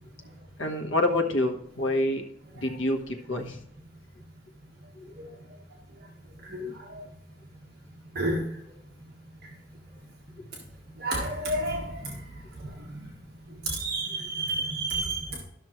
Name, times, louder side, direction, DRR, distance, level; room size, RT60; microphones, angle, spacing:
voice 1, 0.6-2.2 2.6-3.6 5.0-5.1, left 1 dB, 80° left, 3 dB, 1.3 m, -27 dB
voice 2, 6.5-7.0 8.1-8.4 11.0-12.1 13.7-15.3, right 2 dB, 55° right, -2 dB, 1.4 m, -30 dB
12.5 x 6.2 x 3.1 m, 0.75 s
head